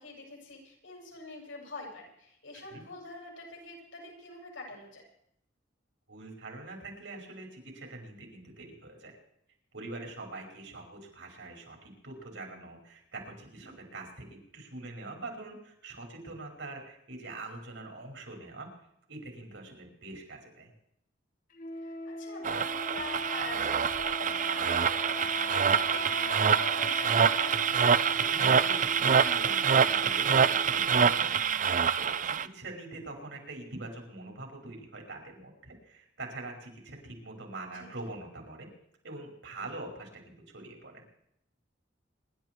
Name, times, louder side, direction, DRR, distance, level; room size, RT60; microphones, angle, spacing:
voice 1, 0.0-5.0 13.6-13.7 21.7-27.6 37.7-38.1, left 2 dB, 85° left, -1 dB, 7.1 m, -45 dB
voice 2, 6.1-9.2 9.7-18.7 19.1-20.7 28.2-38.7 39.0-41.0, right 2 dB, 75° right, 1 dB, 5.5 m, -44 dB
sound 1, 21.6-31.3, left 1 dB, 45° left, 1.1 m, -41 dB
sound 2, 22.4-32.5, right 7 dB, 45° right, 0.6 m, -26 dB
26.0 x 12.0 x 4.7 m, 0.74 s
head